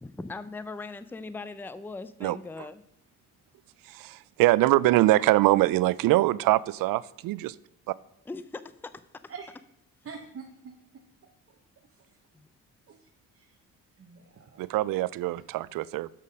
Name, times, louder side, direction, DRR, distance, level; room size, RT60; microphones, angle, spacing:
voice 1, 0.0-2.8 8.3-8.9 12.3-12.5, left 3 dB, 5° left, 0.5 m, -39 dB
voice 2, 3.9-7.6 7.9-8.0 14.6-16.1, right 17 dB, 70° right, 0.5 m, -23 dB
voice 3, 10.0-10.7 12.1-12.2 12.9-13.1 13.3-13.5 14.0-14.6, right 5 dB, 40° right, 1.1 m, -44 dB
7.4 x 6.3 x 5.1 m
supercardioid pair, 70°, 35 cm